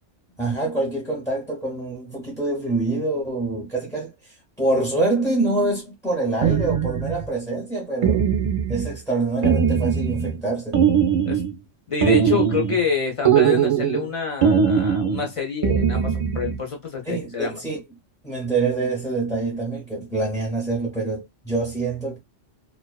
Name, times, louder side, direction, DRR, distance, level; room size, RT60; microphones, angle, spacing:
voice 1, 0.3-8.2 8.7-10.8 17.0-17.8 18.2-22.2, right 2 dB, 5° left, 0.6 m, -25 dB
sound 1, 6.4-7.3 8.0-9.0 9.4-10.4 10.7-11.5 12.0-12.8 13.3-14.1 14.4-15.3 15.6-16.6, right 7 dB, 45° right, 0.4 m, -20 dB
voice 2, 11.9-17.6, left 5 dB, 40° left, 0.4 m, -27 dB
2.4 x 2.2 x 2.3 m
omnidirectional pair, 1.3 m